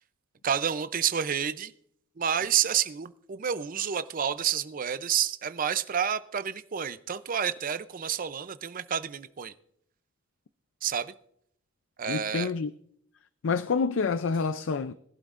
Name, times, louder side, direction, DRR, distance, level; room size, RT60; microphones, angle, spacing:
voice 1, 0.4-1.7 2.2-9.5 10.8-11.1 12.0-12.5, right 8 dB, 45° right, 0.5 m, -29 dB
voice 2, 12.1-12.7 13.4-14.9, left 5 dB, 70° left, 0.4 m, -28 dB
21.0 x 11.5 x 2.5 m
head